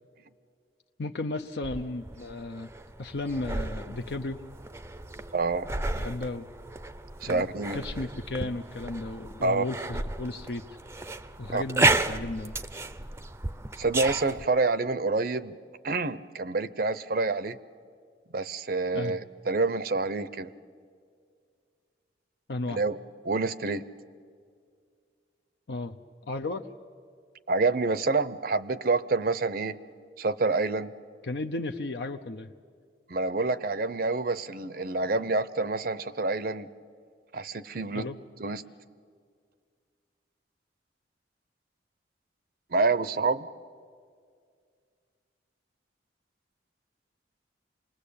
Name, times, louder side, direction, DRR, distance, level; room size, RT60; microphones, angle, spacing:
voice 1, 1.0-2.7 3.0-4.4 5.9-6.5 7.3-7.5 7.7-10.6 11.4-12.5 18.9-19.1 22.5-22.8 25.7-26.0 26.2-26.6 31.2-32.5 37.9-38.2, left 2 dB, 65° left, 4 dB, 0.7 m, -34 dB
sound 1, 1.6-14.5, right 2 dB, 15° right, 0.6 m, -33 dB
voice 2, 5.3-5.7 7.2-7.8 9.4-9.6 11.5-11.6 13.8-15.6 15.8-17.6 18.3-20.5 22.7-23.0 23.2-23.9 27.5-29.8 30.2-30.9 33.1-36.7 37.3-38.1 38.4-38.6 42.7-43.5, right 3 dB, 55° right, 16 dB, 0.6 m, -27 dB
27.0 x 20.0 x 8.5 m, 2.1 s
head